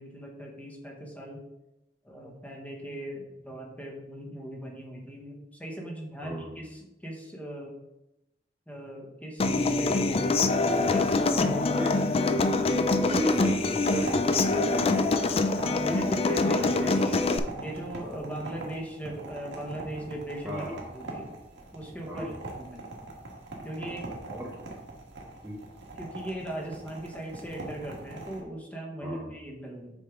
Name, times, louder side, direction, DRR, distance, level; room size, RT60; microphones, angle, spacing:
voice 1, 0.0-1.4 2.0-7.7 8.7-11.8 15.6-17.2 17.5-20.6 20.9-21.3 21.7-23.1 23.6-24.1 26.0-29.9, right 1 dB, 10° left, 0 dB, 1.1 m, -39 dB
voice 2, 6.2-6.5 11.7-11.9 13.0-15.1 15.8-16.1 16.6-16.9 20.4-20.9 22.1-22.4 23.8-24.0 24.3-24.5 25.4-25.6 29.0-29.3, equal, 10° right, -2 dB, 0.7 m, -34 dB
Human voice / Acoustic guitar, 9.4-17.4, left 3 dB, 35° left, 0.4 m, -25 dB
sound 1, 13.8-28.4, right 2 dB, 85° right, 1.5 m, -42 dB
6.3 x 4.7 x 3.7 m, 0.90 s
head